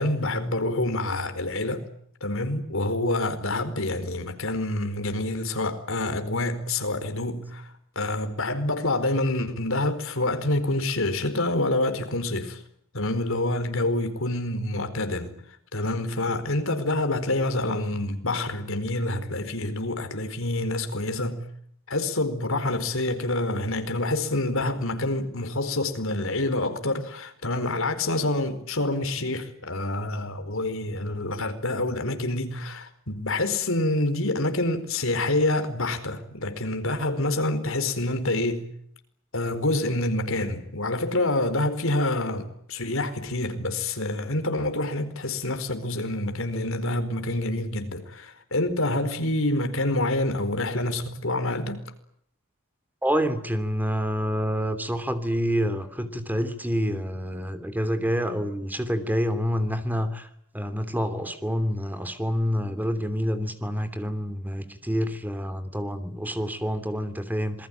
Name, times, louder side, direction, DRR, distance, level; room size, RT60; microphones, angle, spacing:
voice 1, 0.0-1.9 2.2-12.6 12.9-15.3 15.7-21.5 21.9-38.7 39.3-51.8, left 2 dB, 70° left, 4.5 m, -27 dB
voice 2, 53.0-60.3 60.5-67.7, equal, 10° right, 3.0 m, -27 dB
27.0 x 21.0 x 9.0 m
head